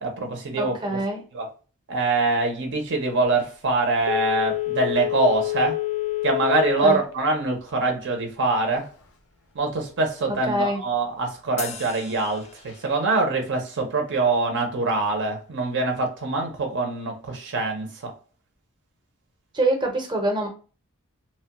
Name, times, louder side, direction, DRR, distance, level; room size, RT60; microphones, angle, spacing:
voice 1, 0.0-1.0 1.3-1.5 1.9-5.8 6.2-8.9 9.5-18.1, right 3 dB, 55° right, 0.7 m, -24 dB
voice 2, 0.6-1.2 6.8-7.0 10.5-10.8 19.5-20.5, right 1 dB, 20° right, 0.7 m, -24 dB
Telephone, 4.0-7.1 7.5-7.6, left 16 dB, 85° left, 0.6 m, -27 dB
sound 1, 11.6-13.2, left 6 dB, 30° left, 0.3 m, -39 dB
3.0 x 2.2 x 2.8 m
head